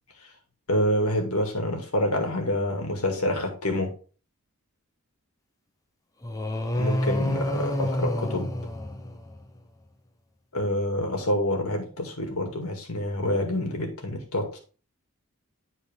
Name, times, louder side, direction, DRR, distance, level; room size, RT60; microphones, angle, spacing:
voice 1, 0.7-3.9 6.8-8.5 10.5-14.6, left 1 dB, 85° left, 3 dB, 2.1 m, -27 dB
sound 1, 6.2-9.6, left 1 dB, 15° left, 0.8 m, -28 dB
10.0 x 4.2 x 3.6 m, 0.38 s
head